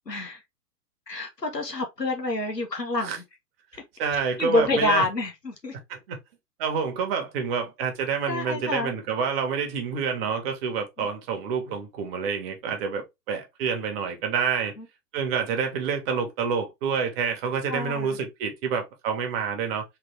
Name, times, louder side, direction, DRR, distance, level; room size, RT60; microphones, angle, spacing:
voice 1, 0.1-0.4 1.1-3.2 4.4-5.8 8.3-8.9 11.0-11.1 14.8-14.9 17.7-18.1, left 2 dB, 90° left, 1.4 m, -27 dB
voice 2, 4.0-5.0 5.9-6.2 6.6-14.7 15.1-19.8, right 6 dB, 35° right, 1.4 m, -28 dB
3.7 x 3.5 x 3.2 m
figure-of-eight pair, 110°, 48 cm